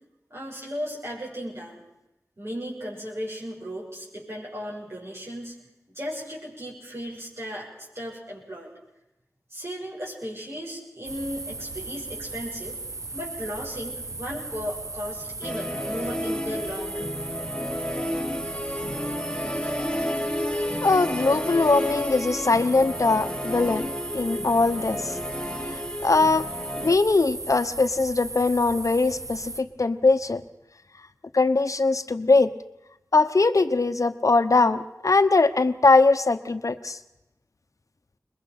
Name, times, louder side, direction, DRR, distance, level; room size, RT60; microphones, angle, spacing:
voice 1, 0.3-1.8 2.4-5.6 5.9-8.7 9.5-12.8 13.1-17.2, equal, 45° right, -4 dB, 6.6 m, -36 dB
sound 1, 11.0-29.6, right 3 dB, 65° right, 1.3 m, -37 dB
Musical instrument, 15.4-27.0, left 1 dB, 15° left, 1.5 m, -31 dB
voice 2, 20.8-23.9 24.1-25.2 25.7-26.5 26.8-30.4 31.3-32.5 33.1-37.0, left 3 dB, 65° left, 11 dB, 1.0 m, -21 dB
22.5 x 21.0 x 6.0 m, 0.89 s
wide cardioid pair, 45°, 6 cm